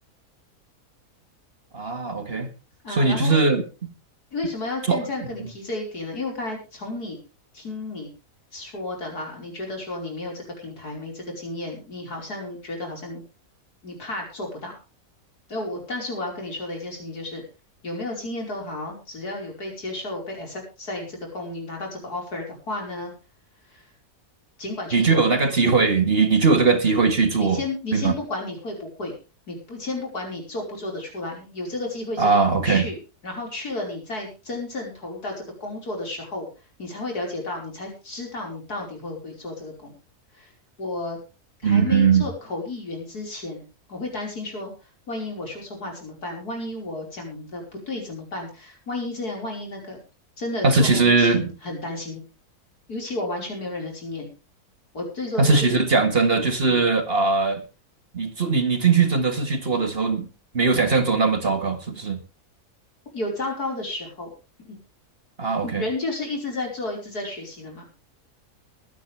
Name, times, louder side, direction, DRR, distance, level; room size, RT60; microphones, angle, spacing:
voice 1, 1.7-2.5 2.9-3.6 4.9-5.0 24.9-27.6 27.9-28.1 32.2-32.9 41.6-42.3 50.6-51.5 55.4-57.6 58.1-60.3 60.5-62.2 65.4-65.8, right 4 dB, 40° right, 7 dB, 2.0 m, -20 dB
voice 2, 2.8-3.4 4.3-7.2 7.5-8.1 8.5-13.2 13.8-14.8 15.5-17.4 17.8-23.1 23.7-23.9 24.6-25.2 27.3-29.2 29.5-32.3 32.6-33.0 33.2-36.5 36.8-39.9 40.3-40.5 40.8-41.2 41.6-43.6 43.9-44.7 45.1-50.0 50.4-52.2 52.9-54.3 54.9-56.1 56.7-56.9 63.1-64.3 64.7-64.8 65.6-67.9, left 2 dB, 80° left, 1 dB, 5.7 m, -32 dB
22.5 x 9.8 x 3.4 m, 0.31 s
omnidirectional pair, 1.6 m